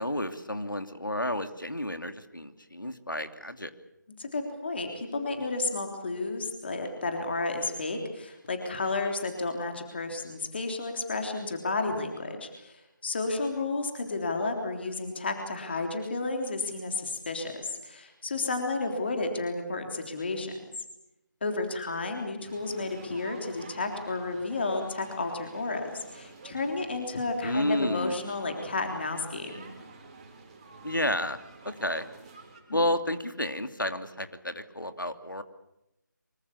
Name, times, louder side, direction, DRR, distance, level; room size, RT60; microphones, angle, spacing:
voice 1, 0.0-3.7 27.4-28.2 30.8-31.4 31.6-32.0 32.7-35.4, left 1 dB, 85° left, 8 dB, 2.8 m, -31 dB
voice 2, 4.2-20.5 21.4-29.6, left 3 dB, 30° left, 4 dB, 3.5 m, -32 dB
sound 1, 22.4-32.6, right 4 dB, 20° right, 3.6 m, -49 dB
25.0 x 24.5 x 7.0 m, 0.89 s
figure-of-eight pair, 160°, 11 cm